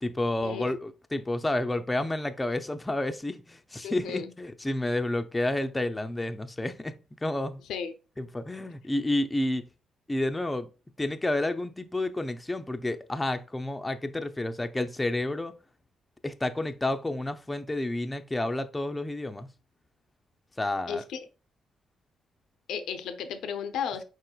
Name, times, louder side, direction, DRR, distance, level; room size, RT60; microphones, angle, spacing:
voice 1, 0.0-7.6 8.2-9.6 10.1-10.7 11.0-15.6 16.2-19.5 20.6-21.0, left 1 dB, 15° left, 0.4 m, -30 dB
voice 2, 3.8-4.3 7.7-7.9 20.9-21.2 22.7-24.0, left 7 dB, 80° left, 0.6 m, -34 dB
4.7 x 4.4 x 2.3 m
cardioid pair, 90°, 0 cm